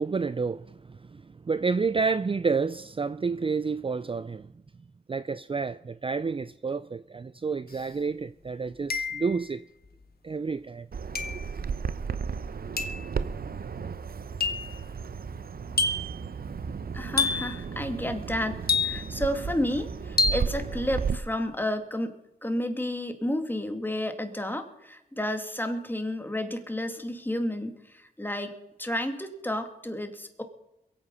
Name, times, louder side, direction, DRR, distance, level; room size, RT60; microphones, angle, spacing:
voice 1, 0.0-4.5 5.1-9.6 10.2-10.9 11.3-11.4, right 4 dB, 30° right, 0.5 m, -30 dB
sound 1, 7.7-7.8 8.9-9.4 11.2-11.5 12.8-13.1 14.4-14.7 15.8-16.2 17.2-17.6 18.7-19.2 20.2-20.5, left 4 dB, 60° left, 1.5 m, -27 dB
Bird vocalization bird call bird song, 10.9-21.2, right 6 dB, 60° right, 0.8 m, -34 dB
voice 2, 16.9-22.1 22.4-30.4, left 1 dB, 10° left, 2.3 m, -31 dB
22.5 x 8.6 x 5.6 m
cardioid pair, 50°, 18 cm